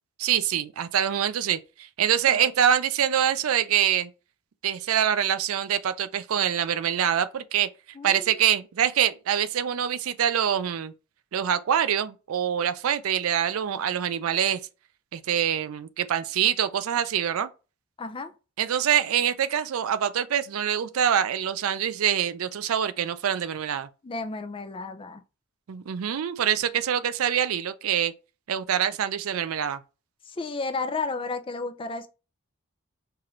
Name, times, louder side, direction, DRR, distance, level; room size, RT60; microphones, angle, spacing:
voice 1, 0.2-4.1 4.6-7.7 8.0-10.9 11.3-14.6 15.1-17.5 18.6-23.9 25.7-28.1 28.5-29.8, right 9 dB, 75° right, 0.4 m, -25 dB
voice 2, 8.0-8.4 18.0-18.3 24.0-25.2 30.3-32.1, left 3 dB, 25° left, 0.4 m, -32 dB
4.7 x 2.5 x 3.0 m
head